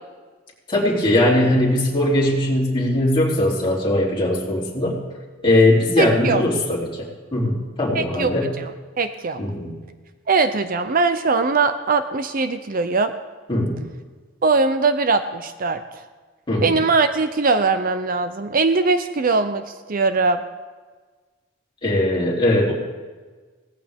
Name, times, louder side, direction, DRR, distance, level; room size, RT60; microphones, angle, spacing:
voice 1, 0.7-5.0 5.4-8.5 9.4-9.7 13.5-13.8 16.5-16.8 21.8-22.7, left 1 dB, 25° left, -5 dB, 3.2 m, -20 dB
voice 2, 6.0-6.4 7.9-8.6 9.0-9.4 10.3-13.1 14.4-16.0 16.6-19.6 19.9-20.4, right 4 dB, 45° right, 10 dB, 0.6 m, -21 dB
17.5 x 15.0 x 3.6 m, 1.4 s
head